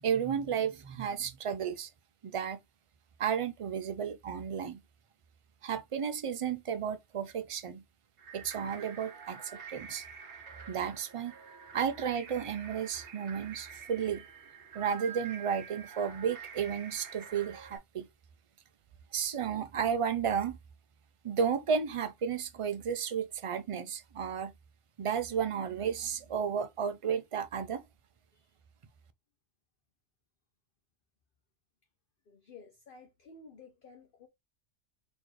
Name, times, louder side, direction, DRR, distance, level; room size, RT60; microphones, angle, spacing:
voice 1, 0.0-1.9 2.2-2.6 3.2-4.8 5.6-7.8 8.3-10.0 10.7-11.3 11.7-14.3 14.7-18.1 19.1-20.6 21.2-24.5 25.0-27.8, right 7 dB, 50° right, 0.3 m, -33 dB
sound 1, 8.2-17.8, right 6 dB, 70° right, 1.2 m, -48 dB
voice 2, 32.3-34.3, left 4 dB, 55° left, 0.8 m, -54 dB
4.0 x 3.1 x 3.1 m
omnidirectional pair, 1.2 m